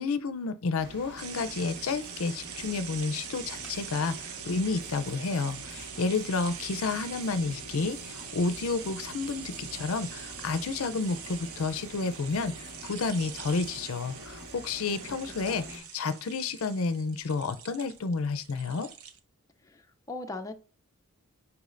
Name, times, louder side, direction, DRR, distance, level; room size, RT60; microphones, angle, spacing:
voice 1, 0.0-18.9, left 4 dB, 65° left, 0.5 m, -31 dB
sound 1, 0.8-15.8, equal, 50° right, 1.7 m, -47 dB
sound 2, 1.2-19.2, right 8 dB, 70° right, 0.7 m, -43 dB
sound 3, 3.6-13.4, left 3 dB, 5° right, 2.1 m, -59 dB
voice 2, 15.5-15.8 19.6-19.8 20.1-20.5, left 2 dB, 15° left, 0.5 m, -39 dB
8.2 x 4.8 x 2.5 m
head